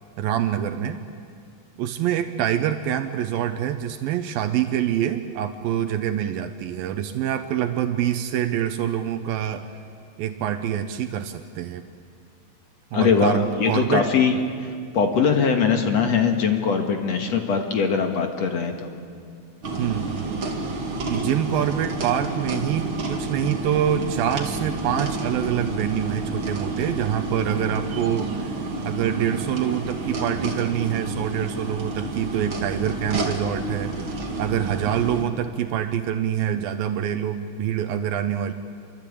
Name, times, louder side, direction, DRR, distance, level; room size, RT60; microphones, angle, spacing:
voice 1, 0.2-1.0 1.8-9.6 10.2-11.8 12.9-14.1 19.8-20.4 21.1-28.5 28.9-33.9 34.4-38.5, right 10 dB, 80° right, 8 dB, 2.7 m, -25 dB
voice 2, 12.9-18.9, left 6 dB, 55° left, 4 dB, 2.5 m, -21 dB
sound 1, 19.6-35.2, right 2 dB, 40° right, 2.7 m, -30 dB
27.5 x 24.5 x 8.6 m, 2.3 s
omnidirectional pair, 4.1 m